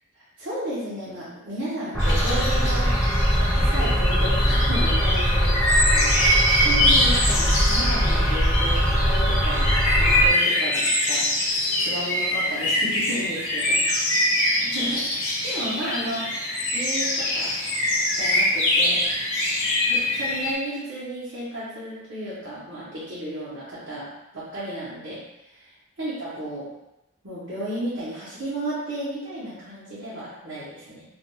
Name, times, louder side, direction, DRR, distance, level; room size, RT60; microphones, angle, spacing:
voice 1, 0.4-3.0 3.3-14.0 14.6-16.3 16.7-17.5 18.1-19.0 19.9-24.1 24.3-25.2 25.6-25.7 26.0-26.7 27.2-31.0, right 1 dB, 60° right, -11 dB, 0.9 m, -33 dB
sound 1, 1.9-10.3, equal, ahead, 0.3 m, -21 dB
sound 2, 2.0-20.5, left 1 dB, 60° left, 0.7 m, -24 dB
2.5 x 2.2 x 3.0 m, 0.93 s
head